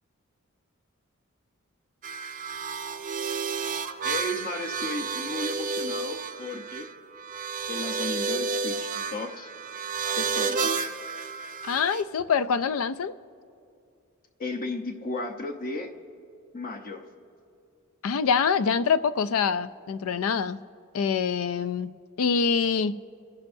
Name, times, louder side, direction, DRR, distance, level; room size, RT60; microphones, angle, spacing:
sound 1, 2.0-12.0, right 5 dB, 40° right, 0.5 m, -31 dB
voice 1, 4.0-6.9 7.7-9.5 10.2-10.7 14.4-15.9 16.5-17.1, left 2 dB, 45° left, 4 dB, 0.9 m, -34 dB
voice 2, 11.6-13.1 18.0-20.6 20.9-21.9 22.2-22.9, left 6 dB, 75° left, 15 dB, 0.4 m, -25 dB
28.0 x 10.5 x 2.7 m, 2.5 s
head